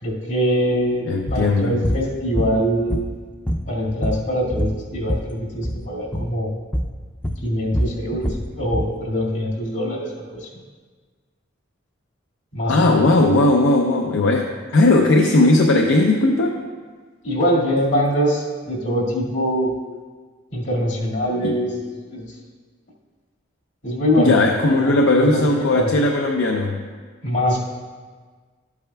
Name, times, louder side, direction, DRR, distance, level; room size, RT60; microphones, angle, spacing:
voice 1, 0.0-1.0 1.3-3.1 3.7-6.5 7.4-10.5 12.5-13.1 17.2-19.8 20.5-22.3 23.8-24.3 24.7-25.9 27.2-27.6, equal, 70° left, -5 dB, 2.1 m, -23 dB
voice 2, 1.0-1.8 12.7-16.5 21.4-21.6 24.2-26.8, left 2 dB, 90° left, 2 dB, 0.6 m, -17 dB
sound 1, 1.3-1.5 1.8-2.0 2.4-3.2 3.5-5.3 5.6-5.8 6.1-6.3 6.7-6.9 7.2-8.9, equal, 10° left, 0.4 m, -24 dB
12.5 x 8.4 x 2.3 m, 1.5 s
head